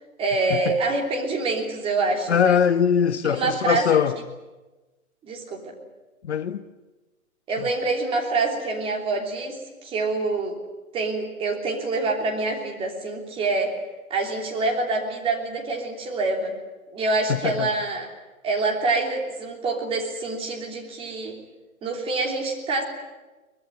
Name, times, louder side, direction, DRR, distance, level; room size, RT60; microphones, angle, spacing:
voice 1, 0.2-2.6 3.2-3.9 5.2-5.7 7.5-10.6 10.9-13.7 14.1-16.6 16.9-18.1 18.4-21.4 21.8-22.8, right 3 dB, 15° right, 3.2 m, -26 dB
voice 2, 2.3-4.2 6.2-6.6 17.3-17.7, left 7 dB, 50° left, 1.0 m, -21 dB
23.5 x 21.0 x 9.2 m
hypercardioid pair, 145°, 43 cm